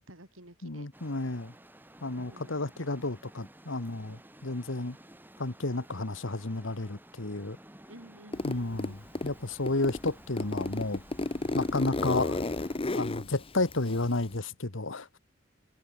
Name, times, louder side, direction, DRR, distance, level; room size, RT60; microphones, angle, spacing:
voice 1, 0.1-0.9 2.1-2.6 7.9-9.0, right 1 dB, 80° right, 7.0 m, -51 dB
voice 2, 0.6-1.5 2.0-5.0 5.4-7.6 8.4-11.0 11.5-12.4 12.9-15.2, left 2 dB, 70° left, 1.7 m, -32 dB
Thunderstorm - Macau - Estrada Nova da Ilha Verde, 0.9-12.8, right 1 dB, 10° right, 3.0 m, -54 dB
Zipper (clothing), 8.3-9.3 9.7-14.4, left 2 dB, 30° left, 0.8 m, -32 dB
head